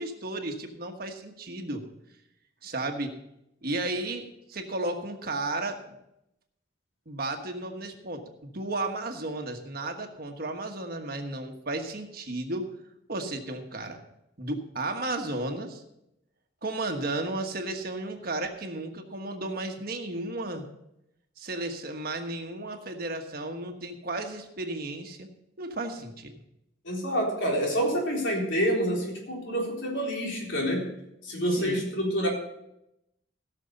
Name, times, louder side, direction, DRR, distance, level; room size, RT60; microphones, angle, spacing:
voice 1, 0.0-1.8 2.6-3.2 3.6-4.2 4.5-6.0 7.1-12.7 13.1-14.0 14.4-15.8 16.6-20.7 21.4-25.3 25.6-26.3 31.5-31.8, right 2 dB, 50° right, 5 dB, 1.4 m, -33 dB
voice 2, 26.8-30.9 31.2-32.3, equal, 70° left, -1 dB, 3.8 m, -27 dB
17.0 x 6.6 x 5.4 m, 0.84 s
head